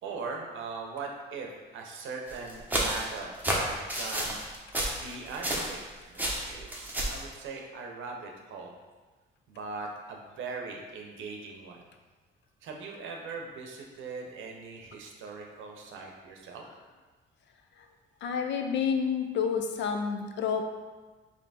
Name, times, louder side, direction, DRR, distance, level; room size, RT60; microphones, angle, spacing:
voice 1, 0.0-4.4 4.9-8.7 9.5-11.9 12.6-16.6, right 4 dB, 75° right, 1 dB, 0.7 m, -40 dB
sound 1, 2.3-5.9 6.1-7.2, right 1 dB, 10° right, 0.8 m, -31 dB
voice 2, 18.2-20.6, left 6 dB, 65° left, 5 dB, 0.5 m, -29 dB
3.4 x 2.8 x 4.0 m, 1.3 s
cardioid pair, 90°, 20 cm